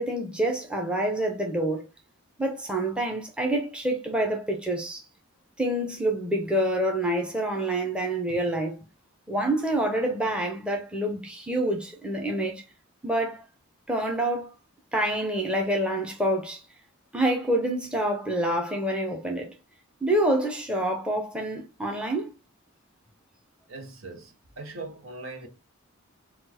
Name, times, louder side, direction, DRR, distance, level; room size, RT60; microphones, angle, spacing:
voice 1, 0.0-1.8 2.4-5.0 5.6-8.8 9.3-12.6 13.0-13.5 13.9-14.5 14.9-16.6 17.1-19.6 20.0-22.3, right 1 dB, 5° right, 0.7 m, -27 dB
voice 2, 23.7-25.5, right 2 dB, 65° right, 1.0 m, -40 dB
4.3 x 2.4 x 4.3 m
head